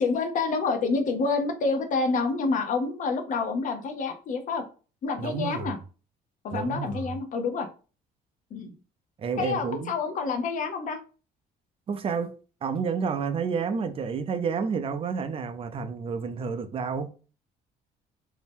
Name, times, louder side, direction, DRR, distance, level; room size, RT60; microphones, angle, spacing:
voice 1, 0.0-4.6 5.0-5.8 6.4-7.7 8.5-8.7 9.4-11.0, left 4 dB, 50° left, 0.7 m, -28 dB
voice 2, 5.2-5.7 6.5-7.2 9.2-9.9 11.9-12.3 12.6-17.1, right 5 dB, 35° right, 0.4 m, -30 dB
2.7 x 2.1 x 3.4 m
cardioid pair, 110°, 17 cm